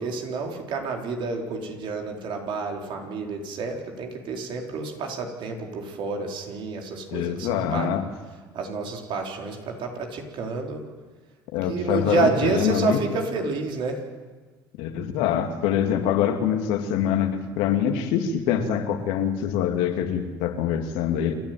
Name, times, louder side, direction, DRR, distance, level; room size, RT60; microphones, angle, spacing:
voice 1, 0.0-7.9 8.5-10.8 11.7-14.0, right 4 dB, 60° right, 2 dB, 4.3 m, -29 dB
voice 2, 7.1-8.0 11.5-13.0 14.8-21.4, left 9 dB, 75° left, 6 dB, 2.4 m, -24 dB
28.5 x 10.5 x 9.4 m, 1.4 s
hypercardioid pair, 65°, 9 cm